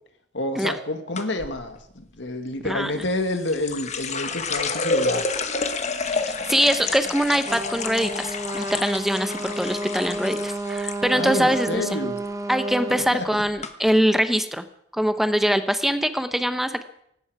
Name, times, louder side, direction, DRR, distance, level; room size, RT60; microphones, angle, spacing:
voice 1, 0.3-5.3 11.1-12.2 13.1-13.4, left 2 dB, 80° left, 7 dB, 1.9 m, -29 dB
sound 1, 1.2-1.5 3.0-11.0 11.3-11.8 12.2-12.5 13.2-13.3 13.6-13.7, left 4 dB, 40° left, 1.3 m, -29 dB
voice 2, 2.6-3.0 6.0-12.0 12.5-14.6 14.9-16.8, equal, ahead, 9 dB, 0.9 m, -23 dB
Trumpet, 7.5-13.1, right 2 dB, 20° right, 1.2 m, -31 dB
18.0 x 16.0 x 4.9 m, 0.73 s
head